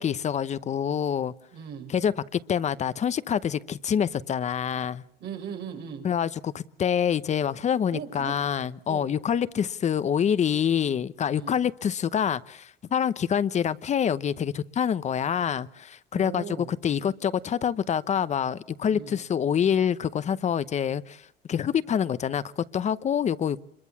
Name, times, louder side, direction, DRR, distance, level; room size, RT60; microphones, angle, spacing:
voice 1, 0.0-1.3 1.9-5.0 6.0-16.4 16.8-21.2 21.5-23.6, left 8 dB, 45° left, 0.9 m, -26 dB
voice 2, 1.5-1.9 5.2-6.0 7.9-8.3 8.9-9.1 11.3-11.6 16.1-16.7 18.9-19.2, right 7 dB, 80° right, 5.5 m, -38 dB
26.5 x 22.5 x 7.2 m
cardioid pair, 110°, 17 cm